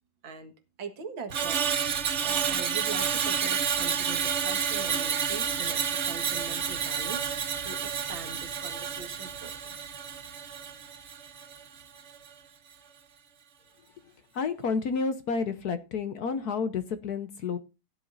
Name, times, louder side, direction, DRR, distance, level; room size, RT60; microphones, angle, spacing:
voice 1, 0.8-7.4 7.6-9.8, right 5 dB, 70° right, 2.5 m, -42 dB
Screech, 1.3-11.7 12.0-12.3, right 7 dB, 50° right, 0.9 m, -30 dB
voice 2, 14.3-17.6, left 5 dB, 60° left, 1.1 m, -30 dB
15.5 x 10.5 x 2.6 m
omnidirectional pair, 2.2 m